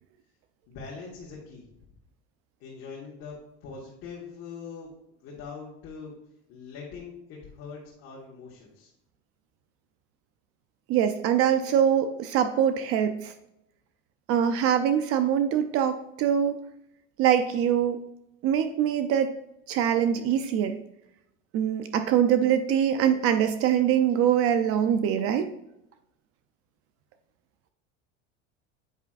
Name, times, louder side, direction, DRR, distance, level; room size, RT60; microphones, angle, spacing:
voice 1, 0.7-1.9 2.6-4.9 5.2-6.1 6.5-8.9, left 5 dB, 50° left, -4 dB, 1.6 m, -42 dB
voice 2, 10.9-13.3 14.3-16.6 17.2-18.0 18.4-19.4 19.7-20.8 21.5-25.5, right 9 dB, 50° right, 9 dB, 0.5 m, -23 dB
8.2 x 5.6 x 2.4 m, 0.82 s
cardioid pair, 140°, 29 cm